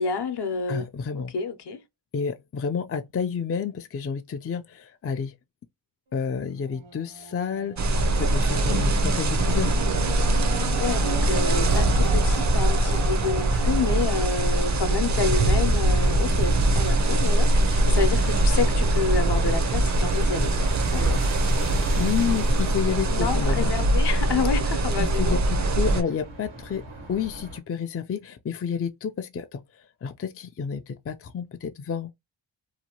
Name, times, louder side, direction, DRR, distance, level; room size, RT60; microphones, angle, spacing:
voice 1, 0.0-0.9 1.1-1.8 10.8-21.2 23.1-25.4, left 5 dB, 60° left, 0.8 m, -29 dB
voice 2, 0.7-1.3 2.1-5.3 6.1-9.8 21.9-23.7 25.2-29.6 30.0-32.1, left 7 dB, 30° left, 0.4 m, -30 dB
sound 1, 6.6-16.9 17.5-17.6, right 2 dB, 70° right, 1.2 m, -37 dB
sound 2, 7.8-26.0, right 1 dB, 40° right, 0.6 m, -22 dB
sound 3, 16.1-27.6, right 2 dB, 90° right, 1.3 m, -39 dB
2.8 x 2.2 x 2.8 m
cardioid pair, 70°, 47 cm